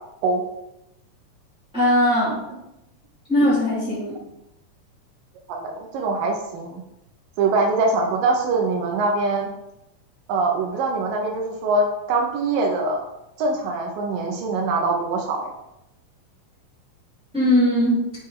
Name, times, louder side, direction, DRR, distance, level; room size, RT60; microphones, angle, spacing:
voice 1, 1.7-2.4 3.3-4.2 17.3-18.0, left 1 dB, 5° right, -9 dB, 0.7 m, -19 dB
voice 2, 5.5-6.8 7.4-9.5 10.3-13.0 13.4-15.5, right 3 dB, 90° right, 1 dB, 2.5 m, -23 dB
8.8 x 3.2 x 3.8 m, 0.87 s
omnidirectional pair, 3.8 m